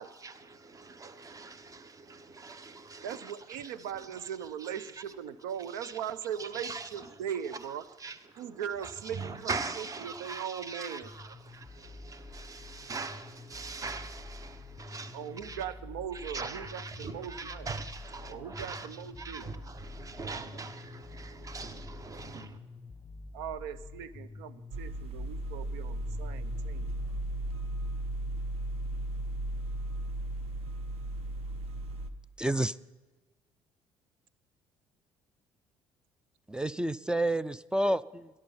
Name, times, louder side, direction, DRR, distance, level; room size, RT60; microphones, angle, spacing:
voice 1, 0.2-3.3 3.6-4.3 4.6-5.0 5.7-6.0 6.4-7.2 7.5-15.6 16.1-22.6, right 4 dB, 30° right, 1.0 m, -42 dB
voice 2, 3.0-7.8 8.4-11.1 15.1-17.7 18.3-19.5 23.3-26.9, right 9 dB, 90° right, 0.6 m, -39 dB
sound 1, 11.0-27.9, left 3 dB, 10° left, 1.0 m, -47 dB
sound 2, 24.7-32.1, right 1 dB, 55° right, 0.9 m, -35 dB
voice 3, 32.4-32.8 36.5-38.3, right 1 dB, 5° right, 0.3 m, -29 dB
13.0 x 11.0 x 5.6 m
supercardioid pair, 75°, 12 cm